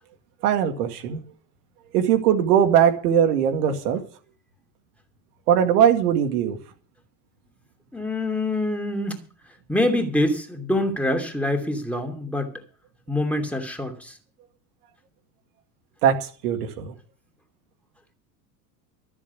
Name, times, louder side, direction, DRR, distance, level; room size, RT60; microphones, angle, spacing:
voice 1, 0.4-1.2 1.9-4.0 5.5-6.6 16.0-16.9, right 9 dB, 65° right, 2.0 m, -20 dB
voice 2, 7.9-9.2 9.7-12.5 13.1-14.1, left 1 dB, 5° left, 2.8 m, -25 dB
13.5 x 7.3 x 8.3 m
figure-of-eight pair, 75°, 50 cm